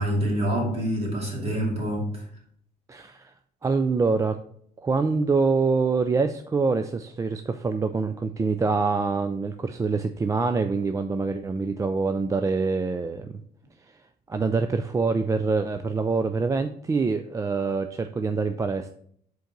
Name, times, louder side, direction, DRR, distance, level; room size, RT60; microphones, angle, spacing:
voice 1, 0.0-2.1, equal, 35° right, -2 dB, 2.4 m, -26 dB
voice 2, 2.9-3.3 3.6-4.3 4.8-13.4 14.3-18.9, right 4 dB, 20° right, 7 dB, 0.3 m, -25 dB
5.1 x 3.9 x 5.3 m, 0.64 s
cardioid pair, 110°, 17 cm